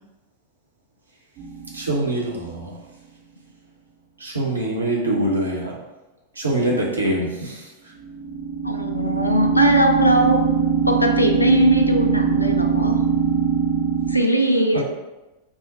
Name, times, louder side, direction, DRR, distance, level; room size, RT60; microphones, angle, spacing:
sound 1, 1.4-1.9 8.0-14.2, right 6 dB, 40° right, 0.6 m, -21 dB
voice 1, 1.7-2.8 4.2-5.8 6.4-7.7, right 1 dB, 80° right, -3 dB, 0.7 m, -24 dB
voice 2, 8.6-10.4 10.9-13.0 14.1-14.8, equal, 85° left, 4 dB, 0.3 m, -19 dB
2.7 x 2.0 x 3.9 m, 1.1 s
figure-of-eight pair, 90°, 0 cm